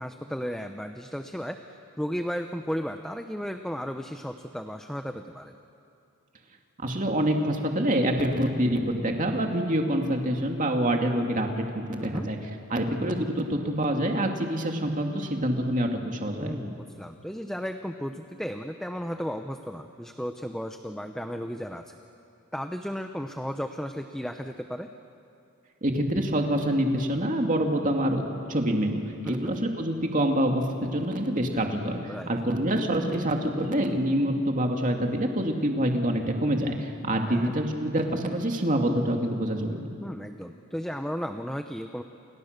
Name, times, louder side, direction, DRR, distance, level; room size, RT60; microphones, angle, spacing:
voice 1, 0.0-1.6 2.0-5.5 12.0-12.3 16.4-22.0 22.5-24.9 29.2-29.6 32.1-32.3 37.3-37.5 40.0-42.0, equal, ahead, 6 dB, 0.8 m, -34 dB
voice 2, 6.8-12.4 12.7-16.6 25.8-28.2 28.5-29.0 29.3-39.8, right 1 dB, 35° right, 2 dB, 2.5 m, -26 dB
29.0 x 29.0 x 6.8 m, 2.6 s
head